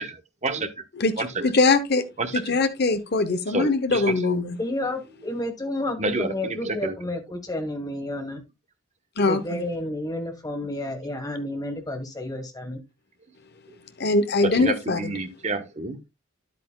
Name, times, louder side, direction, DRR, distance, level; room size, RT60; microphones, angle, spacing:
voice 1, 0.0-0.8 1.2-1.5 2.2-2.6 3.5-4.3 6.0-7.0 13.7-13.8 14.4-16.0, right 3 dB, 35° right, 1.1 m, -29 dB
voice 2, 1.4-2.1 2.3-4.6 9.2-9.6 14.0-15.1, left 3 dB, 50° left, 0.9 m, -22 dB
voice 3, 4.6-8.4 9.2-12.8, left 1 dB, 15° left, 1.5 m, -31 dB
10.0 x 8.4 x 2.3 m
head